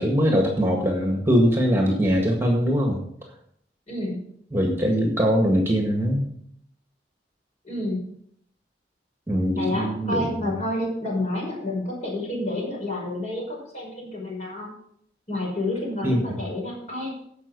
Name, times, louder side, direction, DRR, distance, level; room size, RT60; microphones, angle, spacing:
voice 1, 0.0-3.0 4.5-6.3 9.3-10.5 16.0-16.4, equal, 15° right, 1 dB, 1.7 m, -22 dB
voice 2, 3.9-4.2 7.6-8.0 9.6-14.7 15.3-17.2, left 1 dB, 40° left, -2 dB, 5.4 m, -29 dB
15.0 x 5.6 x 5.4 m, 0.69 s
head